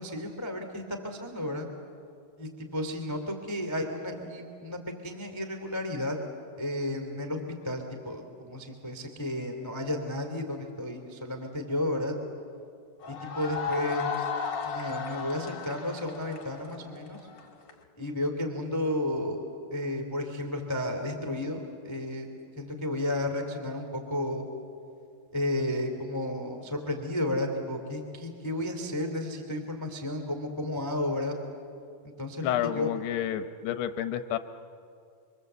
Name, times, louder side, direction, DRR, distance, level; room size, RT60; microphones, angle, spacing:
voice 1, 0.0-1.7 2.4-6.1 6.6-7.4 7.6-12.1 13.1-14.3 14.6-17.2 17.9-19.4 19.7-22.3 22.5-24.5 25.3-31.3 32.0-32.9, left 1 dB, 10° left, 4 dB, 1.0 m, -32 dB
sound 1, 13.0-17.7, left 6 dB, 45° left, 1.4 m, -35 dB
voice 2, 32.4-34.4, left 11 dB, 75° left, 10 dB, 2.5 m, -30 dB
30.0 x 24.0 x 8.1 m, 2.4 s
omnidirectional pair, 5.5 m